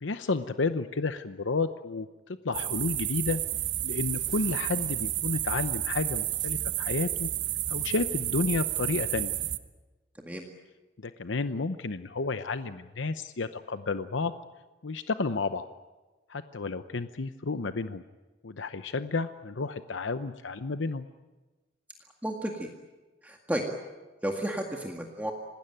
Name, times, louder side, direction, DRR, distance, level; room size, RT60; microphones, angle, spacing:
voice 1, 0.0-3.4 3.8-7.3 7.7-9.3 11.0-14.3 14.8-15.7 16.3-18.0 18.4-21.1, left 3 dB, 90° left, 10 dB, 0.8 m, -31 dB
sound 1, 2.5-9.6, right 13 dB, 75° right, 1.1 m, -31 dB
voice 2, 22.2-22.7 23.2-23.7 24.2-25.3, right 1 dB, 10° right, 1 dB, 1.9 m, -32 dB
27.0 x 19.5 x 9.1 m, 1.2 s
head